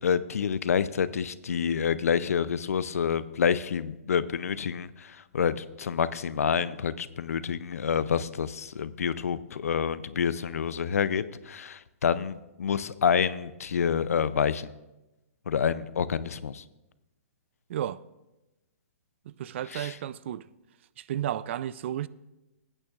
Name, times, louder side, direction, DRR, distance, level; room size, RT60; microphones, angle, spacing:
voice 1, 0.0-14.7 15.5-16.6 19.7-20.0, left 7 dB, 80° left, 0.5 m, -28 dB
voice 2, 19.4-20.4 21.1-22.1, right 11 dB, 55° right, 0.4 m, -32 dB
20.5 x 8.9 x 2.4 m
hypercardioid pair, 135°, 8 cm